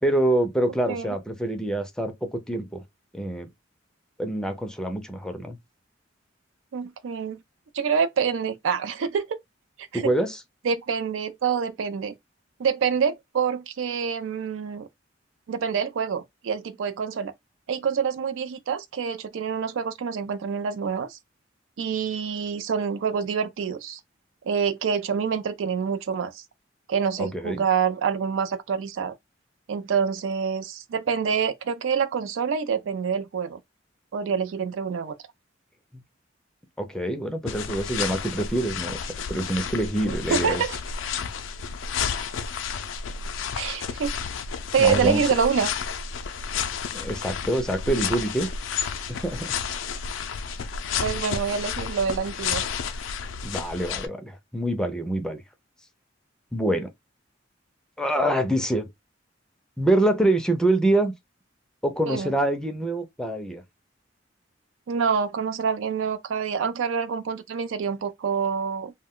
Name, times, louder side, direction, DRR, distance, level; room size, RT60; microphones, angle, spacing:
voice 1, 0.0-2.8 3.1-3.5 4.2-5.6 9.9-10.4 27.2-27.6 35.9-36.0 36.8-39.0 39.3-40.6 44.8-45.2 46.9-48.5 49.1-49.5 53.4-55.4 56.5-56.9 58.0-58.9 59.8-61.1 61.8-63.6, right 1 dB, 5° left, 0.4 m, -25 dB
voice 2, 6.7-7.4 7.7-9.4 9.8-10.0 10.6-12.1 12.6-14.9 15.5-17.3 17.7-21.2 21.8-24.0 24.5-26.4 26.9-29.2 29.7-33.6 34.1-35.1 40.1-40.8 43.5-44.2 44.7-45.7 51.0-52.6 62.1-62.3 64.9-68.9, right 6 dB, 80° right, 0.4 m, -26 dB
sound 1, 37.5-54.1, left 6 dB, 90° left, 0.4 m, -31 dB
2.2 x 2.2 x 3.6 m
head